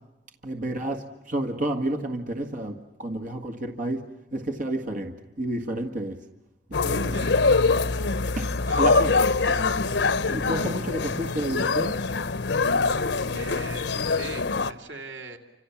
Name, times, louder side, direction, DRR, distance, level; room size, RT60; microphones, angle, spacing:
voice 1, 0.4-6.2 6.7-7.2 8.4-8.5 8.8-9.2 10.3-12.0, right 1 dB, 45° right, 1.8 m, -30 dB
sound 1, 6.7-14.7, left 4 dB, 75° left, 0.9 m, -24 dB
voice 2, 7.0-7.4 8.6-8.9 9.5-9.7 13.3-15.4, right 3 dB, 85° right, 2.7 m, -41 dB
30.0 x 26.5 x 7.3 m
head